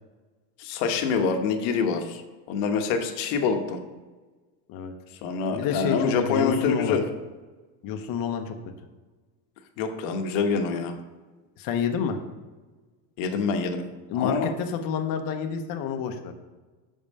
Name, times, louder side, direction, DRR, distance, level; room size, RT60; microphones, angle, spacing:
voice 1, 0.6-2.2 2.5-3.8 5.2-7.0 9.8-10.9 13.2-13.9 14.1-14.5, left 5 dB, 60° left, 5 dB, 1.2 m, -26 dB
voice 2, 5.5-7.0 7.8-8.6 11.6-12.2 14.1-16.3, left 7 dB, 45° left, 5 dB, 0.9 m, -28 dB
6.0 x 5.5 x 5.3 m, 1.3 s
supercardioid pair, 115°, 49 cm